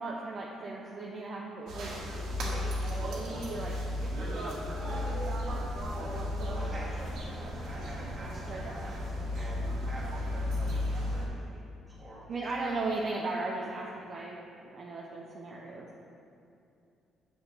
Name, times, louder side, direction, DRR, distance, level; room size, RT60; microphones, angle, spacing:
voice 1, 0.0-5.1 5.4-5.7 6.0-6.7 8.5-8.6 12.3-15.9, right 3 dB, 35° right, -3 dB, 0.7 m, -38 dB
sound 1, 1.7-11.3, left 1 dB, 75° right, 1.7 m, -34 dB
voice 2, 5.7-6.2 6.5-12.4, right 1 dB, 20° right, -6 dB, 1.9 m, -48 dB
9.6 x 7.1 x 3.5 m, 2.6 s
cardioid pair, 165°, 0 cm